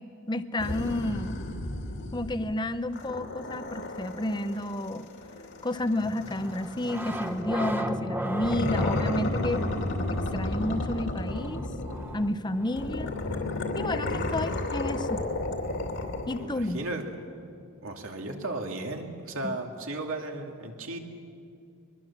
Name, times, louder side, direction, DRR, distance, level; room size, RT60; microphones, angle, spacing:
voice 1, 0.0-1.4 2.1-5.1 5.6-9.7 10.1-11.7 12.1-13.1 13.7-15.2 16.3-16.8 19.4-19.6, left 1 dB, 20° left, 11 dB, 0.7 m, -31 dB
sound 1, 0.6-2.6 2.9-7.4 8.4-12.3 12.8-16.5, left 2 dB, 55° left, 2.6 m, -32 dB
sound 2, 6.0-14.8, right 1 dB, 10° right, 1.1 m, -37 dB
voice 2, 16.2-17.1 17.8-21.0, right 2 dB, 60° right, 2 dB, 2.6 m, -35 dB
23.5 x 22.0 x 7.4 m, 2.4 s
head